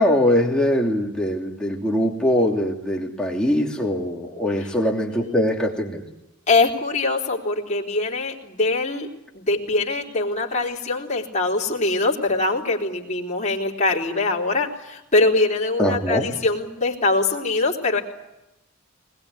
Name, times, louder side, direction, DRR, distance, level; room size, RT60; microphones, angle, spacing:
voice 1, 0.0-6.0 15.8-16.2, equal, 5° left, -1 dB, 2.9 m, -22 dB
voice 2, 5.0-5.4 6.5-9.1 9.3-18.0, left 3 dB, 35° left, -2 dB, 4.1 m, -23 dB
21.5 x 21.0 x 9.8 m, 0.93 s
head